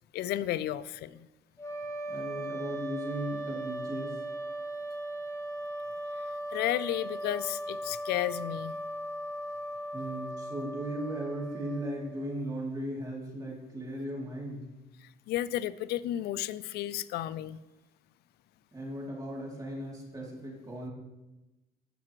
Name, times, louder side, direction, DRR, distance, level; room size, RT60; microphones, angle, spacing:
voice 1, 0.1-1.3 6.5-8.8 15.3-17.6, left 13 dB, 70° left, 17 dB, 0.4 m, -32 dB
sound 1, 1.6-12.5, right 1 dB, 15° left, 1.2 m, -38 dB
voice 2, 2.1-4.2 9.9-14.6 18.7-20.9, right 1 dB, 20° right, -3 dB, 2.9 m, -37 dB
15.0 x 5.9 x 3.1 m, 1.0 s
cardioid pair, 110°, 17 cm